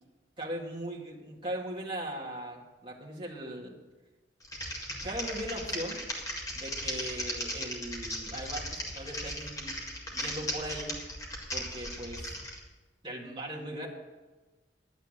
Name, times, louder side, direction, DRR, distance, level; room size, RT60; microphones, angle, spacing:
voice 1, 0.4-3.7 5.0-6.0 6.5-9.8 10.1-10.9 11.5-12.3 13.0-13.9, right 1 dB, 25° right, -3 dB, 2.1 m, -39 dB
Typing, 4.4-12.6, equal, 20° left, 1.9 m, -37 dB
11.0 x 9.3 x 6.5 m, 1.2 s
head